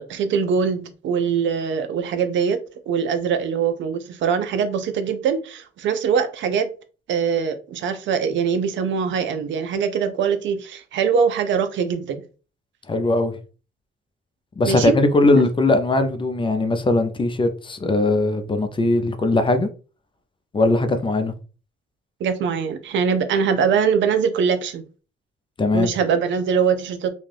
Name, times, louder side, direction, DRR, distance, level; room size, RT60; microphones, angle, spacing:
voice 1, 0.0-2.6 2.9-6.7 7.1-12.2 14.7-15.0 22.2-24.8 25.7-27.1, right 6 dB, 70° right, 0.5 m, -22 dB
voice 2, 12.9-13.3 14.6-19.7 20.5-21.3 25.6-25.9, left 2 dB, 25° left, 0.5 m, -20 dB
2.6 x 2.3 x 3.3 m
cardioid pair, 90°, 20 cm